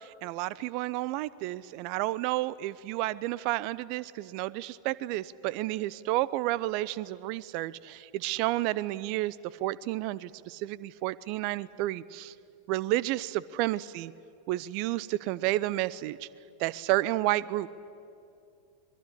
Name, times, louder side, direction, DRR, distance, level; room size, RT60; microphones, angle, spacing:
voice 1, 0.2-9.3 9.6-12.3 12.7-14.1 14.5-16.2 16.6-17.7, right 17 dB, 45° right, 20 dB, 0.7 m, -31 dB
24.0 x 22.0 x 10.0 m, 2.5 s
figure-of-eight pair, 90°, 0 cm